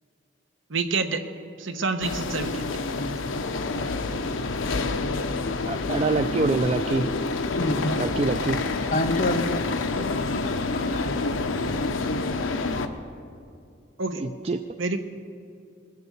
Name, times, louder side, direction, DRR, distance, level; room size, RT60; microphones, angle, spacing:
voice 1, 0.7-1.2 1.6-2.6 14.0-14.2 14.8-15.0, right 4 dB, 80° right, 7 dB, 1.0 m, -27 dB
sound 1, 2.0-12.9, left 3 dB, 85° left, 0.8 m, -28 dB
voice 2, 5.7-7.1 8.0-8.6 9.9-10.0 14.2-14.6, right 3 dB, 30° right, 6 dB, 0.3 m, -25 dB
voice 3, 7.6-8.0 8.9-9.9 10.2-11.0 11.8-11.9, left 1 dB, 40° left, 9 dB, 0.6 m, -28 dB
20.5 x 6.8 x 8.1 m, 2.5 s
head